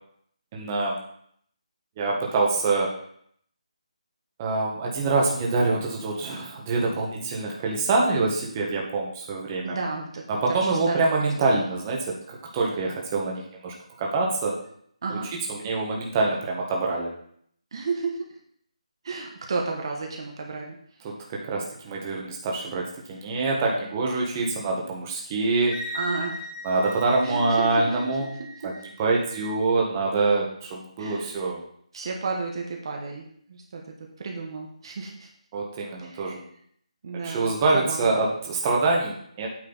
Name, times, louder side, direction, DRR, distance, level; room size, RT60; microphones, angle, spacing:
voice 1, 0.5-1.0 2.0-2.9 4.4-9.8 10.3-14.6 15.1-15.2 15.5-17.1 21.0-25.8 26.6-28.3 28.6-28.7 29.0-31.6 35.5-36.4 37.1-39.5, right 3 dB, 20° right, -2 dB, 1.4 m, -25 dB
voice 2, 9.6-11.3 15.0-15.3 17.7-18.4 19.0-20.8 25.9-26.4 27.2-28.2 28.5-28.7 31.0-31.4 31.9-35.3 36.0-36.3 37.0-38.1, right 4 dB, 45° right, 1 dB, 1.3 m, -33 dB
Wind instrument woodwind instrument, 25.7-29.6, left 1 dB, 35° left, 3.1 m, -39 dB
8.9 x 6.4 x 4.0 m, 0.65 s
figure-of-eight pair, 165°, 4 cm